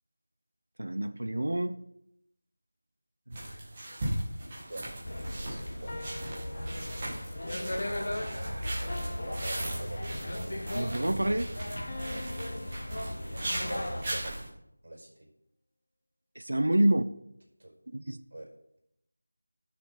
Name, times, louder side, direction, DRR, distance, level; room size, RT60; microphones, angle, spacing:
voice 1, 0.8-1.8 7.7-8.9 10.7-11.5 16.5-17.0 17.9-18.2, right 1 dB, 85° right, 0.8 m, -29 dB
sound 1, 3.3-14.5, right 1 dB, 15° right, 1.7 m, -39 dB
voice 2, 4.5-4.9 5.4-6.0 9.1-10.0 12.0-12.3 13.6-14.5 14.8-15.3 16.7-16.8 17.6-17.7 18.3-18.5, right 1 dB, 50° right, 5.0 m, -44 dB
sound 2, 5.0-14.2, left 1 dB, 40° left, 1.6 m, -36 dB
sound 3, 5.9-7.4 8.9-10.6 11.9-13.8, left 2 dB, 15° left, 0.9 m, -47 dB
16.0 x 6.7 x 4.1 m
figure-of-eight pair, 180°, 0 cm